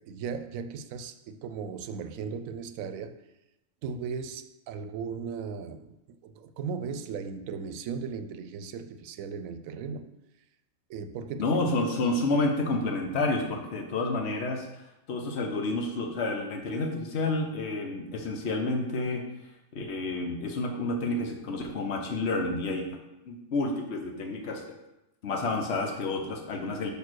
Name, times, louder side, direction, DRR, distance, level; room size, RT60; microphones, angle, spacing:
voice 1, 0.0-3.2 3.8-10.1 10.9-11.9, right 6 dB, 85° right, 10 dB, 1.0 m, -37 dB
voice 2, 11.4-14.7 15.1-19.2 19.7-22.9 23.3-24.6 25.2-26.9, left 2 dB, 55° left, 3 dB, 1.2 m, -29 dB
5.3 x 4.6 x 6.2 m, 0.92 s
omnidirectional pair, 1.4 m